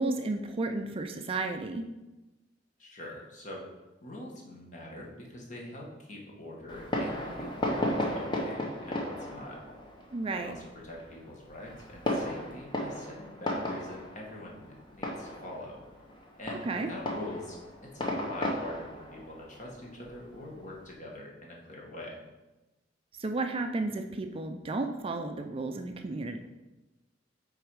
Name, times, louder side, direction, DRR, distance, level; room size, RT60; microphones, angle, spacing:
voice 1, 0.0-1.8 10.1-10.5 16.7-16.9 23.2-26.4, right 2 dB, 30° right, 5 dB, 0.4 m, -32 dB
voice 2, 2.8-3.7 4.0-9.6 10.3-15.8 16.3-22.2, left 1 dB, 40° left, -2 dB, 1.4 m, -44 dB
Fireworks, 6.7-20.8, left 1 dB, 25° left, 0.9 m, -36 dB
6.7 x 4.0 x 4.7 m, 1.1 s
head